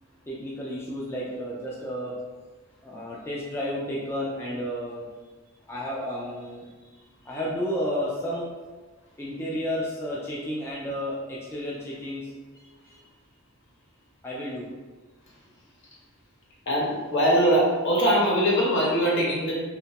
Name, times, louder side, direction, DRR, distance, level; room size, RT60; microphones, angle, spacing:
voice 1, 0.3-2.1 2.8-5.1 5.7-6.7 7.3-8.5 9.2-13.0 14.2-14.7, equal, 10° left, -5 dB, 0.3 m, -32 dB
voice 2, 16.7-19.5, equal, 60° left, -4 dB, 0.8 m, -22 dB
2.8 x 2.2 x 2.8 m, 1.3 s
head